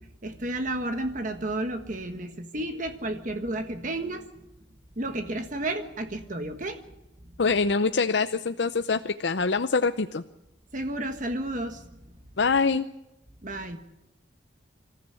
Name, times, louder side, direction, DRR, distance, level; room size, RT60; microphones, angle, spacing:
voice 1, 0.0-4.3 5.0-6.8 10.7-11.8 13.4-13.8, right 1 dB, 45° right, 7 dB, 1.5 m, -32 dB
voice 2, 7.4-10.2 12.4-12.9, left 4 dB, 70° left, 9 dB, 0.7 m, -24 dB
26.5 x 14.5 x 8.5 m, 0.96 s
head